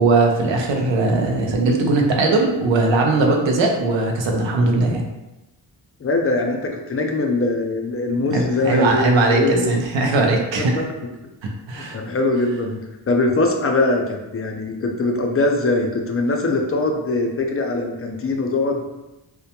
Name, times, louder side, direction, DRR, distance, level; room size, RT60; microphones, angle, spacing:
voice 1, 0.0-5.0 8.3-10.8 11.4-12.0, right 3 dB, 70° right, 1 dB, 0.6 m, -19 dB
voice 2, 6.0-9.8 10.8-10.9 11.8-12.8 13.1-18.9, left 2 dB, 30° left, 2 dB, 0.4 m, -22 dB
2.1 x 2.1 x 2.8 m, 0.99 s
cardioid pair, 50°, 47 cm